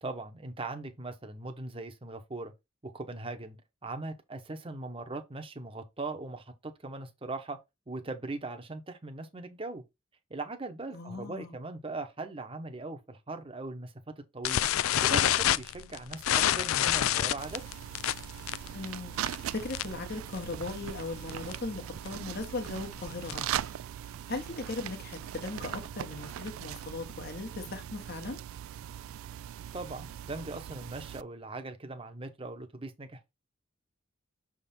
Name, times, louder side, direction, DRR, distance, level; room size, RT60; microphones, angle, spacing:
voice 1, 0.0-2.5 2.8-7.6 7.9-9.8 10.3-14.6 15.0-17.6 29.7-33.3, right 2 dB, 25° right, 0.9 m, -40 dB
voice 2, 10.9-11.6 18.7-23.7 24.3-28.4, left 3 dB, 50° left, 1.4 m, -38 dB
sound 1, 14.4-20.1 20.3-20.6 20.9-21.0 21.3-21.6 22.1-23.6, left 11 dB, 90° left, 0.4 m, -28 dB
sound 2, 17.4-31.2, right 11 dB, 90° right, 0.3 m, -40 dB
6.3 x 3.7 x 4.2 m
head